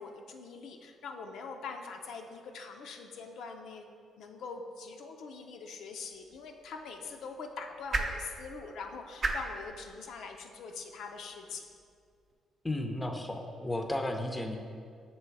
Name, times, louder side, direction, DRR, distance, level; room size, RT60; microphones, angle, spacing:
voice 1, 0.0-3.9 4.2-11.7, left 4 dB, 75° left, 3 dB, 0.4 m, -43 dB
sound 1, 6.1-12.3, right 3 dB, 45° right, 0.6 m, -40 dB
voice 2, 12.6-14.6, left 1 dB, 15° left, 4 dB, 0.5 m, -33 dB
6.8 x 3.1 x 4.5 m, 2.2 s
cardioid pair, 90°, 0 cm